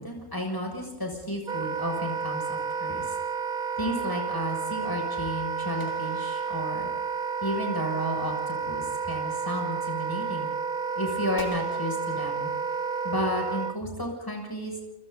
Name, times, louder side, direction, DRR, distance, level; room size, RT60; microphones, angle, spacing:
voice 1, 0.0-3.1 3.8-6.9 7.4-10.5 11.0-12.5 13.0-14.8, equal, 15° left, 1 dB, 6.9 m, -32 dB
Wind instrument woodwind instrument, 1.5-13.8, right 5 dB, 45° right, 0.9 m, -31 dB
sound 1, 5.8-7.2 11.4-13.0, left 2 dB, 65° left, 3.9 m, -49 dB
29.0 x 26.5 x 4.0 m, 1.0 s
omnidirectional pair, 1.3 m